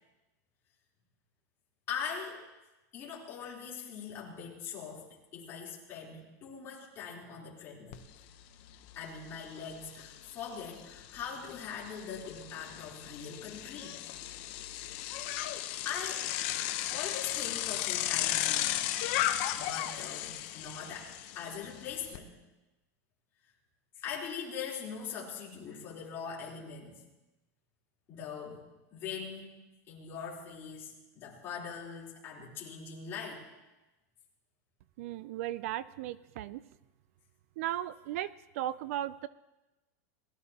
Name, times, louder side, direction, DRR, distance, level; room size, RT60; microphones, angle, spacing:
voice 1, 1.9-2.4 2.9-8.0 8.9-14.0 15.3-15.5 15.8-16.3 16.9-18.8 19.6-22.3 24.0-27.0 28.1-28.6 28.9-29.6 29.9-33.4, left 6 dB, 25° left, -5 dB, 3.5 m, -42 dB
Bicycle, 7.9-8.0 8.4-22.2, left 13 dB, 45° left, 0.8 m, -35 dB
voice 2, 35.0-36.6 37.6-39.3, right 13 dB, 55° right, 17 dB, 0.4 m, -36 dB
21.0 x 13.0 x 2.8 m, 1.0 s
supercardioid pair, 165°, 9 cm